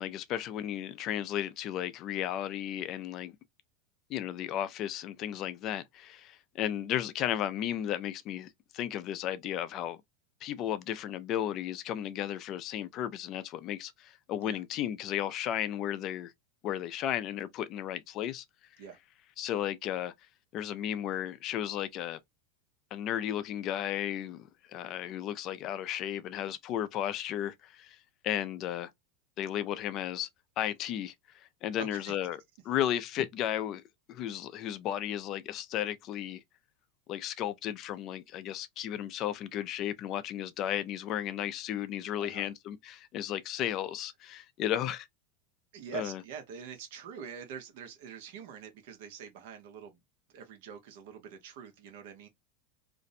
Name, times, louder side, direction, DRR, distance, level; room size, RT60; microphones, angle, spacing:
voice 1, 0.0-3.4 4.1-10.0 10.4-16.3 16.6-18.4 19.4-20.1 20.5-22.2 22.9-28.0 28.2-28.9 29.4-30.3 30.6-32.4 32.6-33.8 34.1-36.4 37.1-45.1 45.9-46.2, left 11 dB, 40° left, 0.3 m, -34 dB
voice 2, 31.8-32.1 42.2-42.5 45.7-50.0 50.3-52.3, right 7 dB, 70° right, 0.8 m, -45 dB
2.5 x 2.0 x 2.5 m
supercardioid pair, 130°, 0 cm